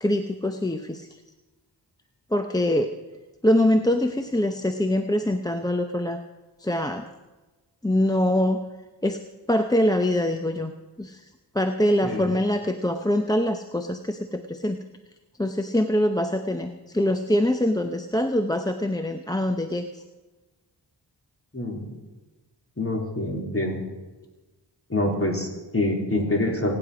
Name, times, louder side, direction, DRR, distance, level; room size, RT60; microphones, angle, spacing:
voice 1, 0.0-1.1 2.3-2.9 3.4-6.2 6.6-7.0 7.8-8.6 9.0-9.2 9.5-10.7 11.0-11.2 11.5-14.8 15.4-20.0, left 1 dB, 10° left, 6 dB, 0.7 m, -24 dB
voice 2, 21.5-21.9 22.8-23.8 24.9-26.7, left 1 dB, 30° left, 0 dB, 3.7 m, -26 dB
23.5 x 9.7 x 5.0 m, 1.2 s
wide cardioid pair, 65°, 44 cm